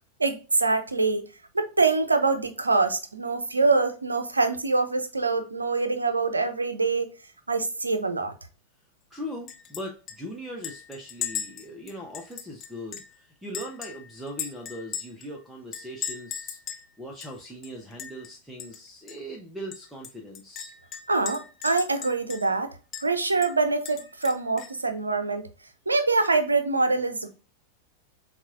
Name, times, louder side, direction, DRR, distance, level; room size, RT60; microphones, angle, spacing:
voice 1, 0.2-1.3 1.5-7.1 7.5-8.3 21.1-22.7 23.0-25.5 25.9-27.3, right 3 dB, 80° right, 0.5 m, -24 dB
voice 2, 9.1-20.7, equal, 5° right, 0.8 m, -40 dB
Chink clink, 9.5-9.8 10.1-10.2 10.6-13.1 13.5-15.3 15.7-16.9 17.2-17.3 17.6-18.3 18.6-18.8 19.1-19.2 19.7-22.6 22.9-23.1 23.4-24.8, left 8 dB, 35° left, 0.6 m, -37 dB
7.1 x 2.4 x 2.5 m
figure-of-eight pair, 90°, 0 cm